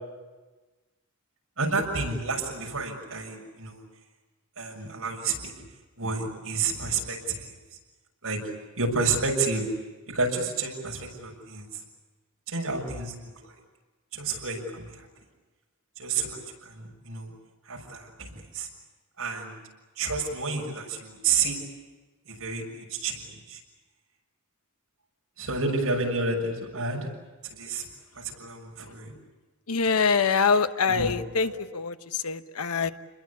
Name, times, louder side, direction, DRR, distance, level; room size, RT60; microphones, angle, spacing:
voice 1, 1.6-3.8 4.6-5.5 6.0-7.5 8.2-8.4 8.8-9.7 10.1-11.7 12.5-13.1 13.4-13.5 14.1-15.1 16.0-17.3 17.7-18.7 19.2-19.6 20.0-21.6 22.3-23.6 25.4-27.1 27.5-27.9 28.2-29.1 30.9-31.1 31.4-31.6, right 4 dB, 70° right, 1 dB, 6.8 m, -30 dB
voice 2, 29.7-32.9, left 5 dB, 80° left, 10 dB, 1.1 m, -25 dB
28.5 x 21.5 x 8.5 m, 1.2 s
head